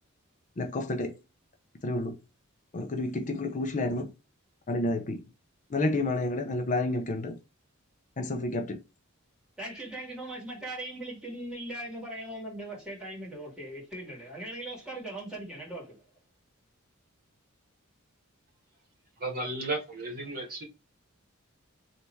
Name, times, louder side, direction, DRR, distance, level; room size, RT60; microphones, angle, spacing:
voice 1, 0.6-1.2 1.8-2.2 2.7-4.1 4.7-5.2 5.7-7.4 8.2-8.8, left 2 dB, 35° left, 0.5 m, -30 dB
voice 2, 9.6-16.1, right 1 dB, 5° right, 2.1 m, -39 dB
voice 3, 19.2-20.6, right 2 dB, 45° right, 1.5 m, -34 dB
3.4 x 2.8 x 4.4 m
head